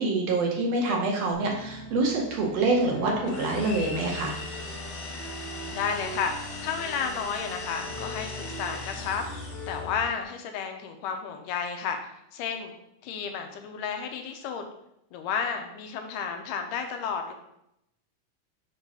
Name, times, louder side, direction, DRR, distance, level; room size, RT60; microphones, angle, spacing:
voice 1, 0.0-4.4, right 3 dB, 70° right, 0 dB, 1.6 m, -26 dB
sound 1, 1.3-10.1, left 1 dB, 10° left, 0.4 m, -40 dB
sound 2, 3.2-9.9, left 3 dB, 65° left, 2.3 m, -40 dB
voice 2, 5.7-6.3 6.6-12.0 12.3-12.7 13.0-14.7 15.1-17.3, left 6 dB, 80° left, 5 dB, 2.3 m, -32 dB
4.8 x 3.8 x 5.4 m, 0.80 s
omnidirectional pair, 3.7 m